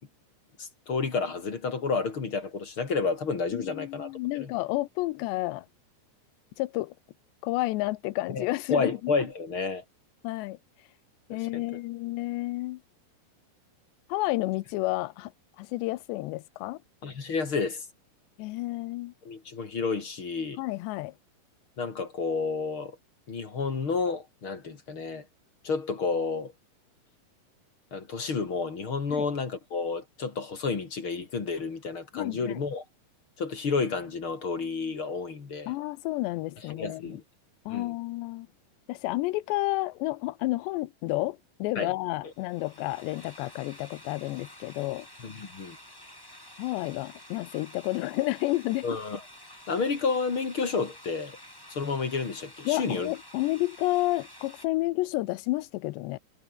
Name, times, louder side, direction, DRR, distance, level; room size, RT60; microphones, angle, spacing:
voice 1, 0.6-4.1 4.4-4.5 8.3-8.4 8.7-9.8 11.3-11.6 17.0-17.9 19.2-20.6 21.8-23.0 23.3-25.2 25.6-26.5 27.9-32.8 33.4-35.7 36.7-37.2 37.7-37.9 41.7-41.9 42.2-42.3 45.2-45.8 48.8-49.2 49.7-51.4 51.7-53.1, left 4 dB, 35° left, 3.0 m, -30 dB
voice 2, 3.5-5.7 6.6-6.9 7.4-8.9 10.2-10.6 11.3-12.8 14.1-15.3 15.6-16.8 18.4-19.1 20.6-21.1 29.1-29.3 32.1-32.6 35.7-37.2 37.7-38.5 38.9-45.1 46.6-48.9 52.7-56.2, left 19 dB, 90° left, 3.0 m, -30 dB
sound 1, 42.3-54.7, left 1 dB, 5° left, 4.0 m, -50 dB
omnidirectional pair, 4.9 m